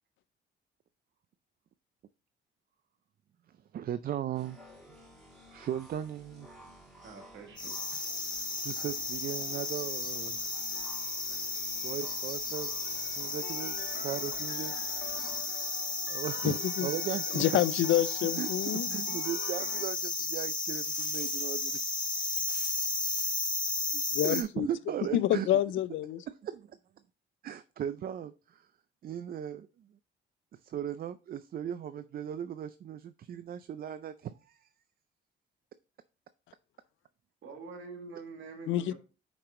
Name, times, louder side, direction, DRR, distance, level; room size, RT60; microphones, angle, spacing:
voice 1, 3.7-4.6 5.5-6.5 8.5-10.5 11.3-11.6 11.8-12.7 13.2-14.7 16.0-17.6 18.4-21.8 23.9-25.5 26.3-26.8 27.4-28.7 29.0-29.7 30.5-34.7, right 9 dB, 50° right, 0.4 m, -37 dB
sound 1, 4.3-15.4, equal, ahead, 2.9 m, -54 dB
voice 2, 7.0-7.8 37.4-38.9, right 4 dB, 70° right, 1.9 m, -46 dB
sound 2, 7.6-24.4, left 3 dB, 20° left, 2.1 m, -34 dB
sound 3, 12.8-19.9, left 6 dB, 50° left, 2.1 m, -48 dB
voice 3, 16.4-16.9 17.3-18.9 24.1-24.7 25.1-26.2 38.7-38.9, left 13 dB, 75° left, 0.4 m, -28 dB
5.6 x 5.3 x 3.7 m
cardioid pair, 90°, 20 cm